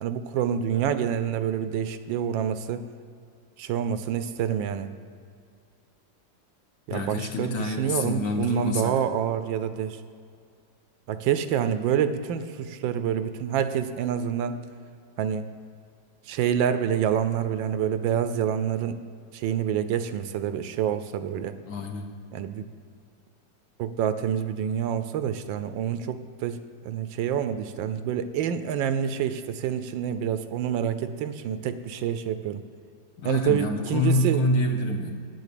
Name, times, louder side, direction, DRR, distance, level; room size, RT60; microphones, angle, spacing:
voice 1, 0.0-2.9 3.6-4.9 6.9-10.0 11.1-14.6 15.2-15.5 16.3-19.0 19.3-21.5 22.3-22.7 23.8-32.6 33.2-34.4, right 9 dB, 80° right, 11 dB, 1.3 m, -27 dB
voice 2, 6.9-9.0 21.7-22.1 33.2-35.1, left 1 dB, 55° left, 3 dB, 1.3 m, -27 dB
9.3 x 8.2 x 6.8 m, 2.3 s
omnidirectional pair, 2.1 m